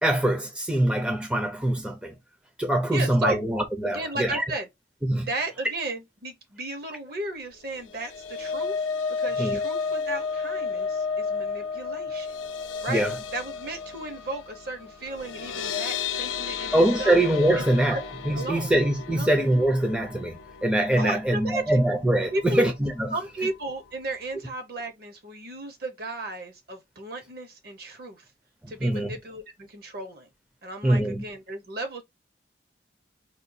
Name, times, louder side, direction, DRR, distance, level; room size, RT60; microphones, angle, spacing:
voice 1, 0.0-2.1 2.6-4.4 5.0-5.3 9.4-9.6 12.9-13.1 16.7-23.1 28.8-29.1 30.8-31.2, right 1 dB, 5° right, 0.5 m, -23 dB
voice 2, 2.9-3.4 3.8-4.7 5.2-8.8 9.2-12.4 12.8-13.0 13.3-17.2 17.6-17.7 17.9-18.0 18.3-18.7 19.1-19.3 21.0-21.8 22.3-22.7 23.1-28.2 28.7-30.3 30.6-32.0, right 2 dB, 55° right, 0.8 m, -34 dB
sound 1, 7.8-22.0 22.4-22.6 22.9-23.0, left 5 dB, 80° left, 0.5 m, -33 dB
4.2 x 2.3 x 2.6 m
head